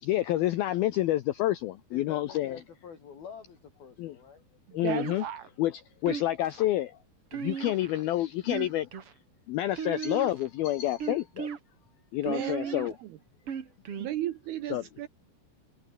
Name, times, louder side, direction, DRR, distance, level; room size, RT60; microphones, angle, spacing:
voice 1, 0.0-2.6 4.0-4.2 4.7-5.2 5.6-7.0 7.3-8.9 9.5-11.5 12.1-12.9 14.7-14.8, left 14 dB, 90° left, 2.2 m, -28 dB
voice 2, 1.9-4.4 7.4-7.5 13.5-13.8, left 7 dB, 55° left, 5.5 m, -48 dB
voice 3, 4.7-5.4 12.3-13.2 14.0-15.1, right 12 dB, 70° right, 2.6 m, -35 dB
sound 1, 4.9-5.5 6.1-6.6 7.3-8.0 8.4-9.1 9.8-10.5 11.0-11.6 12.2-12.9 13.5-14.1, right 7 dB, 45° right, 2.0 m, -36 dB
omnidirectional pair, 5.5 m